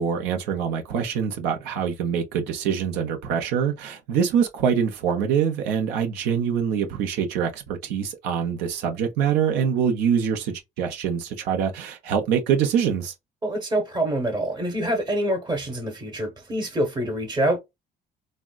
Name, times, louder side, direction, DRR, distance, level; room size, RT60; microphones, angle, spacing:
voice 1, 0.0-13.1, right 7 dB, 90° right, 0.7 m, -24 dB
voice 2, 13.4-17.6, right 1 dB, 25° right, 0.9 m, -26 dB
3.5 x 2.1 x 2.3 m
cardioid pair, 110°, 17 cm